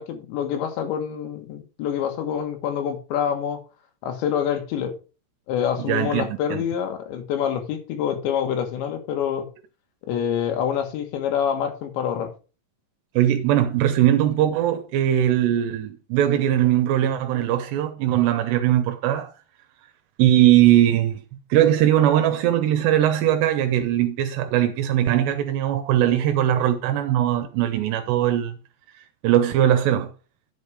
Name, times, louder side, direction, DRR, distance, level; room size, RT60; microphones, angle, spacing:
voice 1, 0.0-3.6 4.0-5.0 5.5-9.5 10.1-12.3, left 8 dB, 90° left, 3.9 m, -26 dB
voice 2, 5.8-6.6 13.2-19.3 20.2-21.2 21.5-28.6 29.2-30.1, right 12 dB, 80° right, 3.0 m, -20 dB
10.5 x 5.6 x 4.9 m
omnidirectional pair, 5.0 m